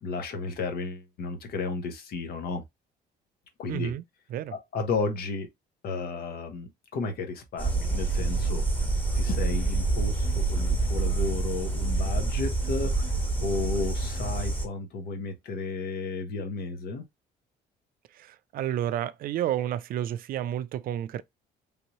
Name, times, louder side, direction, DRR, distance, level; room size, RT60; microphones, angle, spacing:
voice 1, 0.0-2.6 3.6-3.9 4.7-5.5 5.8-8.6 9.1-13.0 13.4-17.0, left 3 dB, 65° left, 1.1 m, -33 dB
voice 2, 3.7-4.0 4.3-4.5 18.1-21.2, right 11 dB, 60° right, 0.4 m, -31 dB
sound 1, 7.6-14.7, right 3 dB, 10° left, 1.5 m, -27 dB
3.4 x 2.8 x 3.0 m
cardioid pair, 110°, 17 cm